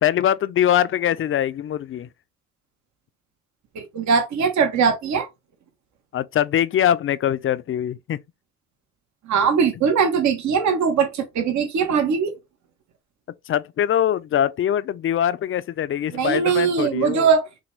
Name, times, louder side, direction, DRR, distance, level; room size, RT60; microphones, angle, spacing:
voice 1, 0.0-2.1 6.1-8.2 13.5-17.3, left 10 dB, 45° left, 0.4 m, -22 dB
voice 2, 3.7-5.3 9.3-12.3 16.1-17.5, right 6 dB, 70° right, 1.1 m, -20 dB
6.1 x 2.3 x 3.1 m
cardioid pair, 90°, 30 cm